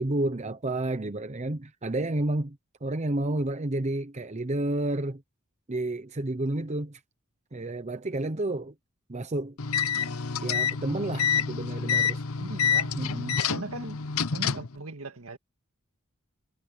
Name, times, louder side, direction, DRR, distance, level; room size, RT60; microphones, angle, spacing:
voice 1, 0.0-5.2 5.7-7.0 7.5-8.7 9.1-9.6 10.4-12.2 13.0-13.4, right 2 dB, 30° right, 0.8 m, -30 dB
sound 1, 9.6-14.8, left 7 dB, 75° left, 0.9 m, -28 dB
voice 2, 12.4-12.9 13.5-14.0 14.3-15.4, right 2 dB, 70° right, 2.0 m, -38 dB
head